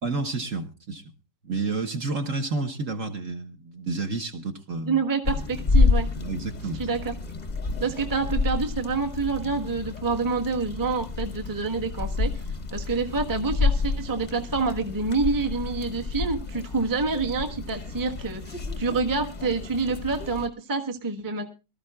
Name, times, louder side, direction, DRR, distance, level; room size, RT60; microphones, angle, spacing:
voice 1, 0.0-1.1 1.4-5.0 6.1-6.9, right 3 dB, 45° right, 5 dB, 1.4 m, -30 dB
voice 2, 4.8-6.1 6.8-7.1 7.8-12.4 12.7-21.5, right 4 dB, 15° right, 3 dB, 1.0 m, -27 dB
sound 1, 5.2-20.5, left 4 dB, 30° left, 0.8 m, -29 dB
23.5 x 13.5 x 2.3 m, 0.28 s
omnidirectional pair, 2.1 m